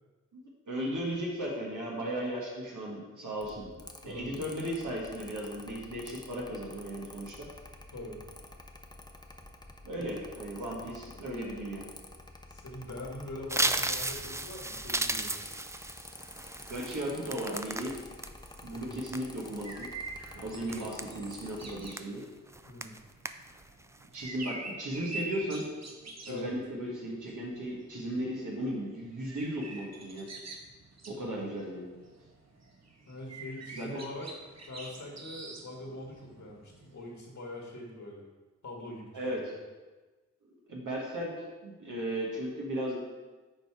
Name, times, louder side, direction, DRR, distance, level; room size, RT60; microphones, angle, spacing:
voice 1, 0.3-3.7 4.0-7.3 9.8-11.8 16.6-17.9 18.6-19.9 20.3-22.2 24.1-25.7 26.3-30.3 31.1-31.9 33.7-33.9 39.1-39.6 40.7-43.0, right 1 dB, 85° right, -4 dB, 1.5 m, -36 dB
Mechanical fan, 3.4-21.9, left 1 dB, 15° left, 0.7 m, -50 dB
voice 2, 4.0-4.3 7.9-8.2 12.5-15.4 18.7-19.0 22.7-23.0 26.3-26.5 31.3-31.5 33.1-34.3 34.7-38.2 38.6-39.4, left 2 dB, 70° left, -1 dB, 1.8 m, -43 dB
sound 1, 13.5-18.3 18.7-19.6 20.1-20.3 20.7-21.5 22.0-22.2 22.5-23.0 23.3-23.6 24.0-24.3, right 2 dB, 10° right, 0.3 m, -34 dB
sound 2, 19.4-37.2, right 3 dB, 60° right, 1.0 m, -46 dB
6.6 x 4.9 x 4.6 m, 1.3 s
cardioid pair, 55°, 30 cm